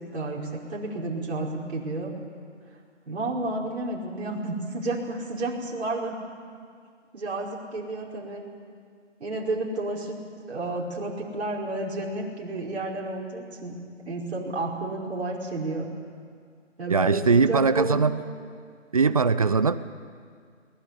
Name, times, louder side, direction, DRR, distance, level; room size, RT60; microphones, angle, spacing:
voice 1, 0.0-2.1 3.1-6.2 7.1-8.4 9.2-10.2 10.5-13.8 14.0-15.9 16.8-18.0, right 2 dB, 60° right, 5.3 m, -31 dB
voice 2, 16.9-18.2 18.9-19.8, right 4 dB, 30° right, 0.6 m, -21 dB
22.0 x 19.0 x 9.9 m
hypercardioid pair, 160°, 37 cm